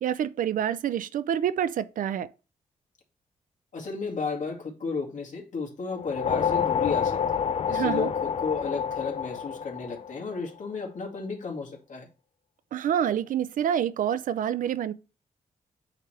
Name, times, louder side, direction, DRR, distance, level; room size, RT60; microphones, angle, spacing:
voice 1, 0.0-2.3 7.7-8.1 12.7-14.9, right 9 dB, 85° right, 0.5 m, -27 dB
voice 2, 3.7-12.1, left 4 dB, 70° left, 2.2 m, -33 dB
sound 1, 5.9-10.5, left 7 dB, 50° left, 0.4 m, -28 dB
8.7 x 3.3 x 4.4 m
cardioid pair, 95°, 14 cm